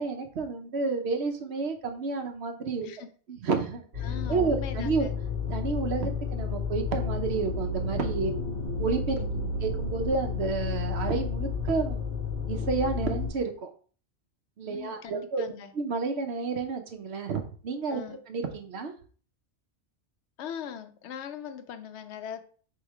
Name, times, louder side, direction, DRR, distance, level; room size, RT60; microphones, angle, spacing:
voice 1, 0.0-2.9 3.3-4.0 4.3-5.1 5.5-8.3 8.8-9.2 9.6-12.0 12.5-13.7 14.6-15.4 15.7-18.9, right 4 dB, 70° right, 5 dB, 1.0 m, -30 dB
sound 1, 3.9-13.3, left 5 dB, 45° right, 1.7 m, -31 dB
voice 2, 4.0-5.1 9.2-9.6 14.7-15.7 17.9-18.2 20.4-22.4, left 8 dB, 80° left, 9 dB, 0.9 m, -40 dB
3.7 x 3.1 x 4.6 m, 0.42 s
omnidirectional pair, 1.2 m